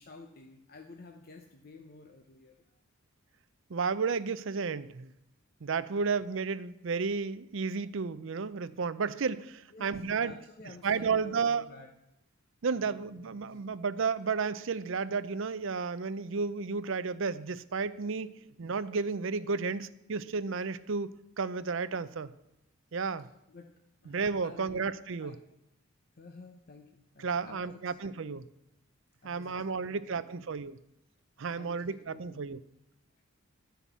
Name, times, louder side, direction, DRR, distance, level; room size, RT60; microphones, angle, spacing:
voice 1, 0.0-2.6 9.7-11.9 12.7-13.6 23.2-23.7 24.0-24.9 25.2-25.4 26.2-28.4 29.2-30.5 31.6-32.6 33.2-33.3, left 3 dB, 45° left, 4 dB, 0.8 m, -52 dB
voice 2, 3.7-5.1 5.6-10.3 10.8-11.7 12.6-18.3 18.6-21.1 21.4-22.3 22.9-23.3 24.1-25.3 27.2-28.4 29.2-30.8 31.4-32.6, right 5 dB, 60° right, 15 dB, 0.5 m, -32 dB
12.5 x 5.7 x 8.2 m, 0.85 s
head